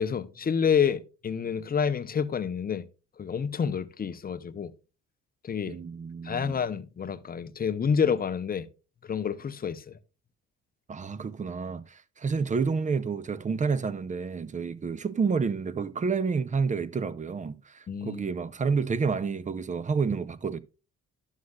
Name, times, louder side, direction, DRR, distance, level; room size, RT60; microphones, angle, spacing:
voice 1, 0.0-2.9 3.2-4.7 5.4-5.8 6.2-8.7 9.0-10.0 17.9-18.2, left 7 dB, 30° left, 0.6 m, -28 dB
voice 2, 5.7-6.6 10.9-20.6, right 5 dB, 25° right, 0.5 m, -29 dB
11.5 x 6.5 x 2.3 m
cardioid pair, 90°, 30 cm